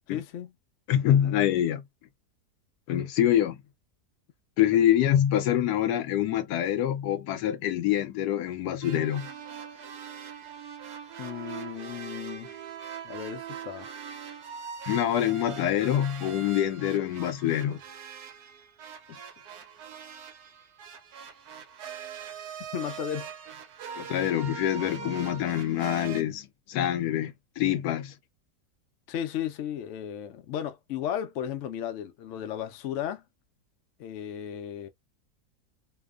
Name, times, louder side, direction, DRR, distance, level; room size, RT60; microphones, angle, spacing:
voice 1, 0.1-0.5 4.7-4.8 11.2-12.5 13.0-13.9 22.7-23.3 29.1-33.2 34.0-34.9, left 10 dB, 70° left, 0.7 m, -35 dB
voice 2, 0.9-1.8 2.9-3.6 4.6-9.3 14.9-17.8 24.0-28.1, left 11 dB, 85° left, 1.2 m, -25 dB
sound 1, 8.8-26.2, right 7 dB, 75° right, 1.1 m, -42 dB
2.8 x 2.1 x 2.3 m
omnidirectional pair, 1.7 m